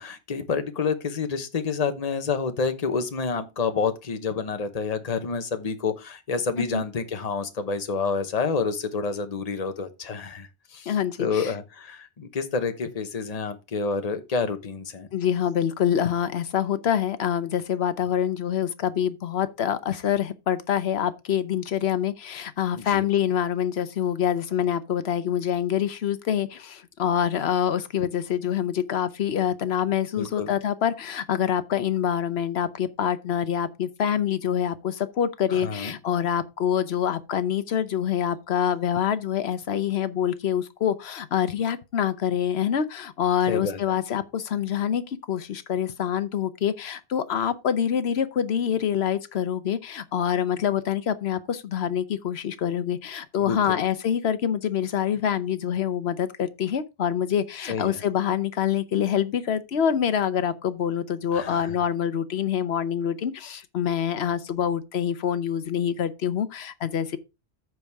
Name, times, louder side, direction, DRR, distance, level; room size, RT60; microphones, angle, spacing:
voice 1, 0.0-10.9 11.2-15.1 22.8-23.0 30.2-30.5 35.5-35.9 43.5-43.8 53.4-53.8 57.7-58.0 61.3-61.8, left 5 dB, 40° left, 1.0 m, -28 dB
voice 2, 10.9-11.5 15.1-67.2, left 9 dB, 70° left, 1.1 m, -26 dB
14.0 x 4.7 x 3.4 m
omnidirectional pair, 1.1 m